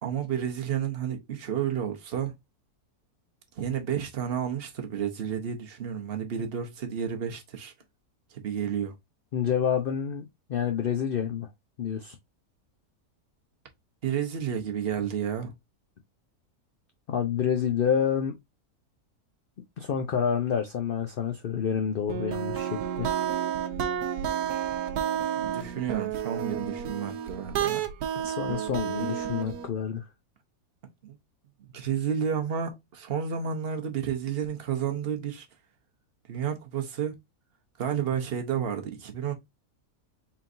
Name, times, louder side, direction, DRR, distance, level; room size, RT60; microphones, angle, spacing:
voice 1, 0.0-2.3 3.5-7.7 8.3-8.9 14.0-15.5 25.4-27.9 31.0-31.2 31.6-35.5 36.3-37.2 37.8-39.3, right 8 dB, 45° right, 0.9 m, -31 dB
voice 2, 9.3-11.5 11.8-12.2 17.1-18.3 19.8-22.7 23.0-23.1 28.2-30.0, left 8 dB, 65° left, 0.5 m, -28 dB
sound 1, 22.1-29.7, right 9 dB, 75° right, 1.2 m, -31 dB
4.4 x 3.8 x 2.5 m
omnidirectional pair, 1.7 m